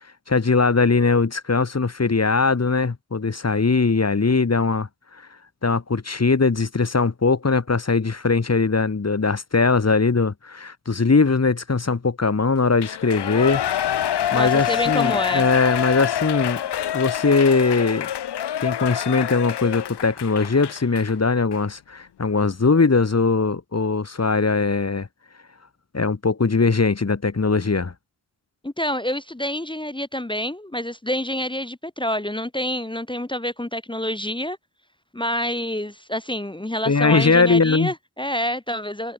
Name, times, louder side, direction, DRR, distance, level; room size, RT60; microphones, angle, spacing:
voice 1, 0.3-4.9 5.6-13.6 14.3-16.6 16.9-18.1 18.6-25.1 25.9-27.9 36.8-37.9, left 4 dB, 35° left, 1.6 m, -20 dB
Shout / Cheering, 12.8-21.1 21.5-21.6, left 10 dB, 75° left, 0.7 m, -26 dB
voice 2, 14.3-15.5 28.6-34.6 35.1-39.1, equal, 10° left, 1.0 m, -27 dB
cardioid pair, 50°, 42 cm